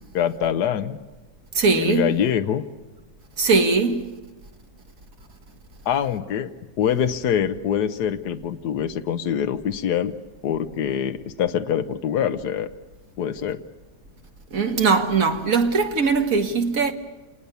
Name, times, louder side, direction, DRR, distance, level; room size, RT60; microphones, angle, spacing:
voice 1, 0.1-1.0 1.8-2.6 5.8-10.1 10.4-12.7 13.2-13.6, left 9 dB, 80° left, 1.5 m, -24 dB
voice 2, 1.5-2.2 3.4-4.1 14.5-16.9, right 4 dB, 55° right, 2.0 m, -20 dB
28.0 x 20.0 x 6.9 m
omnidirectional pair, 1.7 m